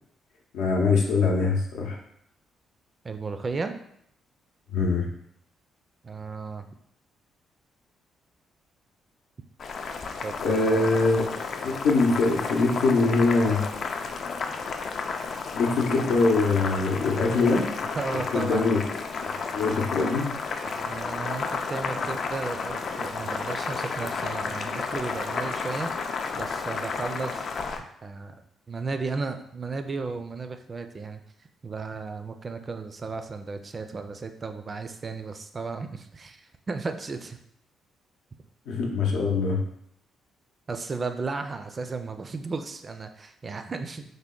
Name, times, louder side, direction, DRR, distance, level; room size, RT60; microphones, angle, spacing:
voice 1, 0.5-2.0 4.7-5.1 10.4-11.2 11.6-13.6 15.5-17.7 18.3-18.8 19.5-20.3 38.7-39.6, left 3 dB, 85° left, 0 dB, 0.7 m, -23 dB
voice 2, 3.0-3.8 6.0-6.7 10.2-10.9 17.9-18.6 20.6-27.5 27.8-28.3 28.7-31.2 31.6-37.4 38.3-38.4 40.7-44.0, right 4 dB, 35° right, 8 dB, 0.3 m, -34 dB
Boiling, 9.6-27.8, left 4 dB, 55° left, 0.3 m, -32 dB
3.4 x 2.1 x 3.7 m, 0.72 s
cardioid pair, 90°, 0 cm